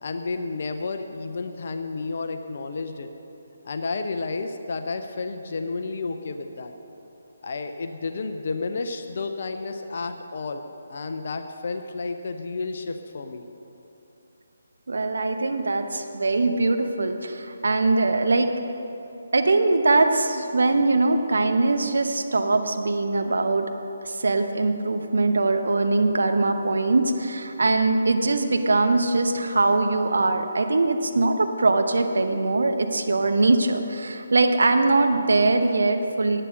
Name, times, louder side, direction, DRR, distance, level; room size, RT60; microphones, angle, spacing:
voice 1, 0.0-3.1 3.6-6.7 7.4-13.4, left 3 dB, 50° left, 7 dB, 0.7 m, -31 dB
voice 2, 14.9-18.5 19.3-23.7 24.0-36.4, right 3 dB, 65° right, 6 dB, 0.9 m, -22 dB
11.0 x 8.9 x 6.6 m, 2.9 s
figure-of-eight pair, 145°, 0 cm